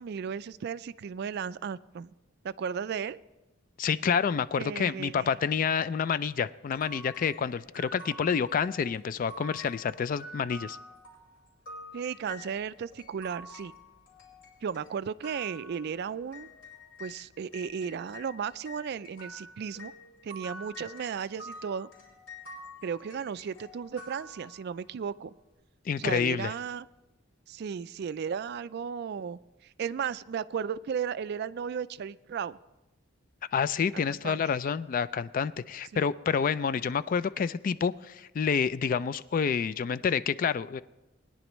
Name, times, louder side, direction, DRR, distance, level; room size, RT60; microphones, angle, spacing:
voice 1, 0.0-2.1 2.4-3.2 4.6-5.3 11.9-13.7 14.6-16.5 17.0-19.9 20.2-21.9 22.8-25.3 26.0-26.9 27.5-29.4 29.8-32.6 34.1-34.4 35.9-36.0, right 7 dB, 55° right, 16 dB, 0.3 m, -35 dB
voice 2, 3.8-10.8 25.9-26.5 33.5-40.8, left 6 dB, 45° left, 16 dB, 0.3 m, -28 dB
sound 1, 6.7-17.2 17.5-24.9, left 1 dB, 70° left, 3.7 m, -48 dB
21.0 x 10.0 x 3.1 m, 1.0 s
head